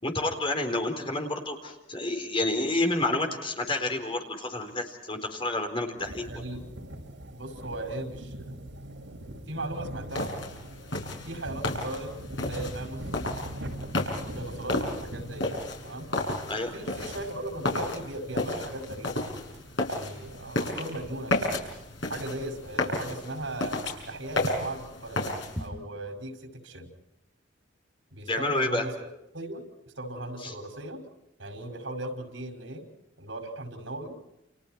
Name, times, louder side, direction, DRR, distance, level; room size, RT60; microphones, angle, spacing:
voice 1, 0.0-6.4 16.5-16.7 28.3-28.8 30.4-30.5, left 2 dB, 30° left, 4 dB, 4.0 m, -29 dB
sound 1, 6.0-23.2, right 1 dB, 70° right, 6.7 m, -43 dB
voice 2, 6.3-6.6 7.3-8.6 9.5-10.3 11.3-12.1 12.5-13.0 13.6-13.9 14.2-16.1 16.7-19.2 19.9-21.6 22.1-23.8 24.1-25.3 25.6-26.9 28.1-28.9 29.3-29.7 30.0-31.0 31.4-32.8 33.2-34.1, right 1 dB, 85° right, 4 dB, 5.7 m, -37 dB
sound 2, 10.1-25.7, left 2 dB, 75° left, 6.5 m, -33 dB
29.5 x 29.5 x 4.6 m, 0.89 s
head